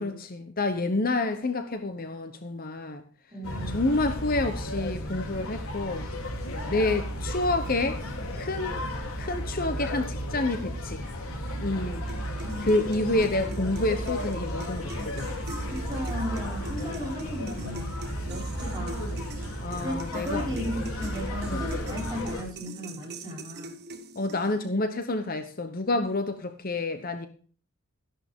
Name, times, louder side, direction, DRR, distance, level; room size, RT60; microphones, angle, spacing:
voice 1, 0.0-3.0 3.7-6.1 6.7-8.0 8.4-8.8 9.2-11.0 11.6-12.1 12.6-15.3 19.6-20.4 21.5-21.7 24.2-27.3, left 2 dB, 40° left, 1.0 m, -28 dB
voice 2, 3.3-3.8 12.4-12.8 15.7-18.0 18.3-19.1 19.8-23.8, equal, 20° right, 5.5 m, -36 dB
sound 1, 3.4-22.4, equal, 80° left, 3.3 m, -33 dB
sound 2, 12.1-24.7, right 1 dB, 50° right, 1.5 m, -44 dB
14.0 x 11.0 x 3.7 m
head